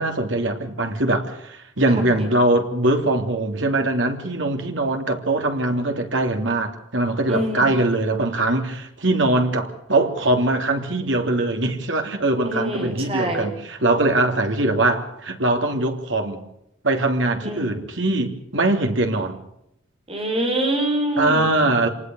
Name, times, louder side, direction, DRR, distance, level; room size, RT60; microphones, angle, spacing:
voice 1, 0.0-16.4 16.8-19.4 21.2-21.9, right 2 dB, 75° right, 3.2 m, -22 dB
voice 2, 7.3-7.8 12.4-13.5 17.4-17.7 20.1-21.8, right 1 dB, 30° right, 5.4 m, -25 dB
27.0 x 19.5 x 6.4 m
head